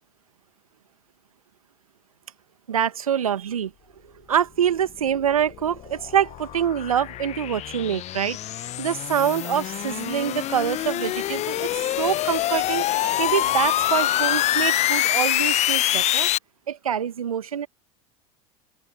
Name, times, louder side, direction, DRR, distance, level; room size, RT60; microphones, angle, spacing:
voice 1, 2.7-3.7 4.3-11.7 12.0-16.3 16.7-17.7, right 9 dB, 80° right, 1.7 m, -25 dB
sound 1, 5.1-16.4, left 14 dB, 40° left, 0.9 m, -25 dB
open air
figure-of-eight pair, 75°, 18 cm